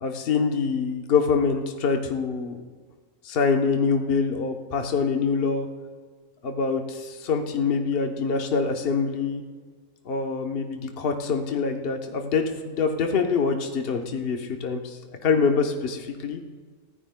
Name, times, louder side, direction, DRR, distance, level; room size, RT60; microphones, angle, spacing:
voice 1, 0.0-2.6 3.2-5.7 6.4-9.4 10.1-16.4, left 5 dB, 50° left, 3 dB, 1.1 m, -25 dB
22.5 x 15.0 x 2.2 m, 1.5 s
omnidirectional pair, 1.4 m